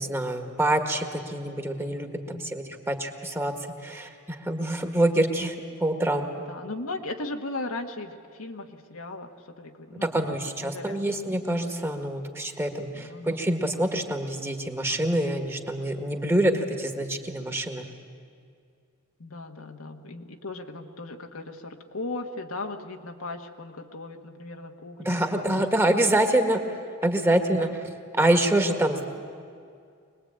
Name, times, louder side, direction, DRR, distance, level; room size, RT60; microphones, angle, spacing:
voice 1, 0.0-3.5 3.8-5.5 5.8-6.3 10.1-17.8 25.0-26.6 27.0-27.7 28.2-29.0, right 1 dB, 10° right, 5 dB, 1.6 m, -26 dB
voice 2, 6.4-10.3 10.6-11.0 12.9-13.4 19.2-25.7 27.6-27.8, left 2 dB, 80° left, 4 dB, 1.6 m, -37 dB
24.5 x 20.0 x 8.9 m, 2.3 s
head